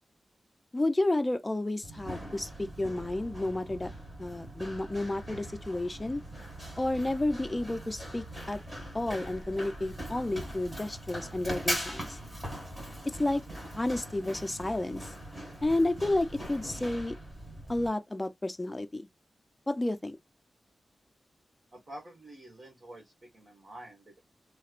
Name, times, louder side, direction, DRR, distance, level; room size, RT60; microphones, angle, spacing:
voice 1, 0.7-3.9 4.2-6.2 6.8-8.6 8.9-12.2 13.0-13.4 13.7-15.1 15.6-17.1 17.7-19.1 19.7-20.2, left 2 dB, 15° left, 0.5 m, -31 dB
Run, 1.8-17.9, equal, 15° right, 2.1 m, -41 dB
sound 1, 2.1-12.4, right 2 dB, 65° right, 1.0 m, -51 dB
voice 2, 21.7-24.2, right 1 dB, 40° right, 1.5 m, -48 dB
3.3 x 3.1 x 2.4 m
wide cardioid pair, 120°, 0 cm